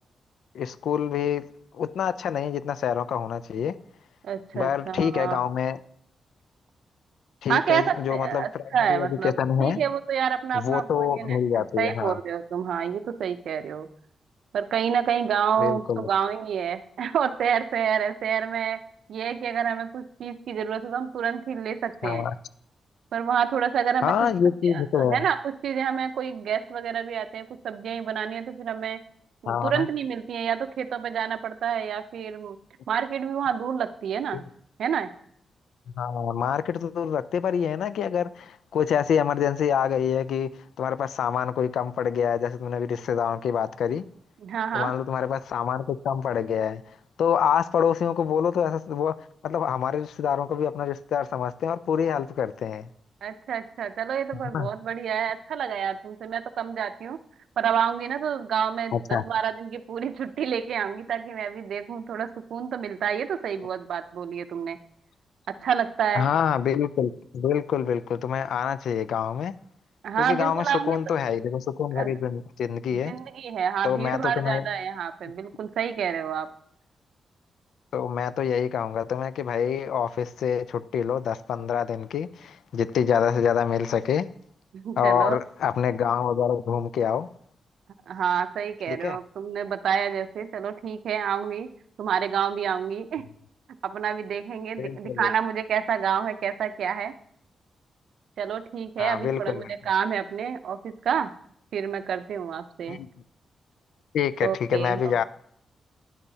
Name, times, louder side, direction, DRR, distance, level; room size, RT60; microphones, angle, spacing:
voice 1, 0.5-1.4 1.7-3.7 4.5-5.8 7.4-8.6 8.9-9.8 10.5-12.2 15.6-16.1 22.0-22.3 24.0-25.2 29.5-29.9 34.3-34.4 36.0-40.5 40.8-44.0 44.7-46.8 47.2-49.1 49.4-52.9 54.5-54.7 58.9-59.2 66.1-69.5 70.2-73.1 73.8-74.6 77.9-84.3 85.0-87.3 88.9-89.2 94.8-95.3 99.0-99.7 102.9-103.1 104.1-105.2, left 8 dB, 85° left, 0.3 m, -26 dB
voice 2, 4.2-5.4 7.5-13.9 14.5-18.8 19.1-22.3 23.1-24.3 24.7-29.0 29.4-32.6 32.9-34.4 34.8-35.1 44.4-44.9 53.2-57.2 57.6-64.8 65.5-66.3 70.0-71.0 71.9-72.1 72.9-76.5 84.7-85.4 88.1-91.7 92.0-93.3 93.8-97.1 98.4-101.3 101.7-103.0 104.4-105.2, right 8 dB, 75° right, 0.5 m, -28 dB
9.8 x 6.9 x 2.8 m
wide cardioid pair, 165°, 0 cm